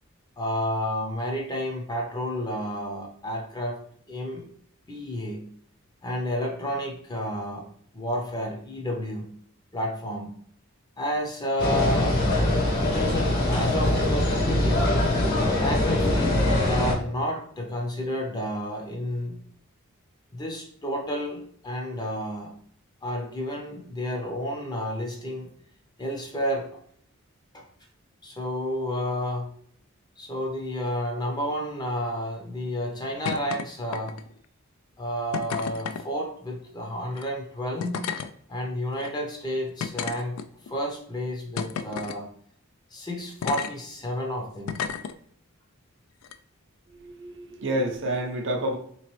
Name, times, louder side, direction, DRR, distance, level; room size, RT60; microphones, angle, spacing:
voice 1, 0.4-3.8 4.1-4.5 4.9-5.4 6.0-7.7 7.9-9.3 9.7-10.3 11.0-12.2 12.8-15.1 15.6-16.3 16.7-19.4 20.3-22.5 23.0-25.5 26.0-26.7 27.5-27.6 28.2-29.5 30.2-34.2 35.0-38.0 38.5-42.3 42.9-44.8, equal, 20° left, 1 dB, 0.6 m, -31 dB
sound 1, 11.6-16.9, left 1 dB, 45° left, 1.0 m, -23 dB
sound 2, 33.2-33.6 33.9-34.4 35.3-36.0 37.1-37.2 37.8-38.3 39.0-39.1 39.8-40.7 41.6-42.2 43.4-43.7 44.7-45.1 46.2-46.3, left 7 dB, 75° left, 0.3 m, -32 dB
voice 2, 46.9-48.8, right 1 dB, 55° right, 2 dB, 0.6 m, -29 dB
3.7 x 3.0 x 3.0 m, 0.64 s
head